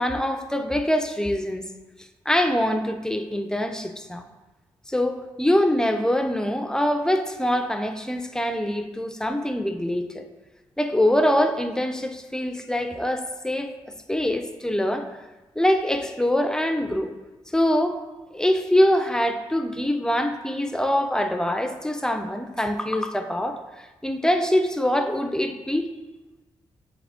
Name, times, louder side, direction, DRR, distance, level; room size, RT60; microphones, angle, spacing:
voice 1, 0.0-1.7 2.3-4.2 4.9-10.3 10.8-13.7 14.1-15.1 15.6-17.1 17.5-18.0 18.3-23.6 24.0-25.9, left 1 dB, 5° left, 7 dB, 0.4 m, -24 dB
3.6 x 3.4 x 3.5 m, 1.1 s
supercardioid pair, 55°, 11 cm